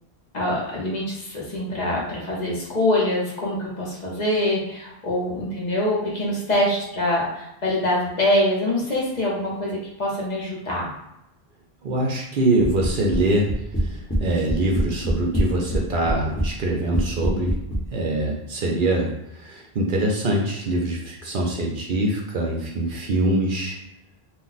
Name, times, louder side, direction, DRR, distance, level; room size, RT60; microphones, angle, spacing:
voice 1, 0.3-10.9, left 1 dB, 45° left, -4 dB, 0.8 m, -24 dB
voice 2, 11.8-13.5 13.8-17.5 17.9-23.8, right 1 dB, 60° right, -1 dB, 0.7 m, -24 dB
sound 1, 12.6-13.2 13.5-14.2 14.5-16.5 16.9-17.8, right 1 dB, 15° left, 0.8 m, -23 dB
2.4 x 2.2 x 3.9 m, 0.85 s
omnidirectional pair, 1.1 m